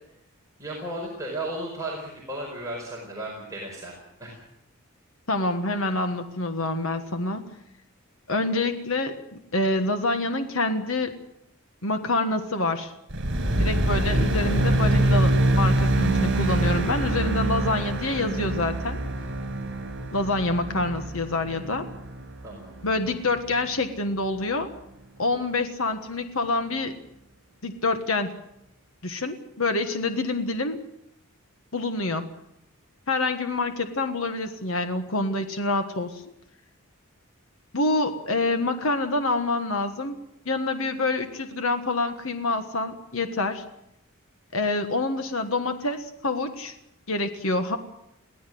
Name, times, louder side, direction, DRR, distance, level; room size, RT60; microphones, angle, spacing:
voice 1, 0.6-4.4 22.4-22.7, right 1 dB, 15° right, -3 dB, 5.2 m, -35 dB
voice 2, 5.3-7.6 8.3-11.2 11.8-12.9 13.5-19.0 20.1-21.9 22.8-24.7 25.2-27.0 27.6-28.3 29.0-30.8 31.7-32.3 33.1-36.2 37.7-40.2 40.4-43.6 44.5-46.7 47.1-47.8, left 2 dB, 70° left, 7 dB, 1.4 m, -26 dB
sound 1, 13.1-23.6, right 1 dB, 55° right, 5.5 m, -25 dB
22.5 x 16.5 x 7.8 m, 0.81 s
head